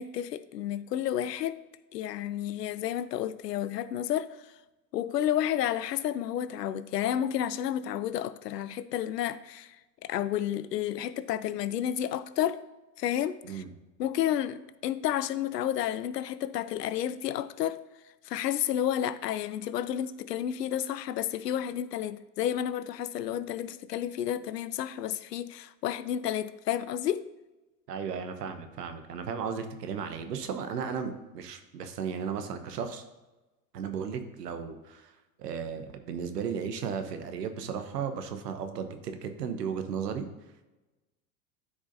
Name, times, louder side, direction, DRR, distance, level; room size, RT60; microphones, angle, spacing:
voice 1, 0.0-1.6 1.9-4.3 4.9-9.8 10.0-12.6 13.0-13.6 14.0-17.8 18.2-27.3, left 11 dB, 80° left, 0.6 m, -31 dB
voice 2, 27.9-33.0 33.7-35.1 35.4-40.3, right 6 dB, 75° right, 1.1 m, -35 dB
12.5 x 4.9 x 2.7 m
hypercardioid pair, 85°, 49 cm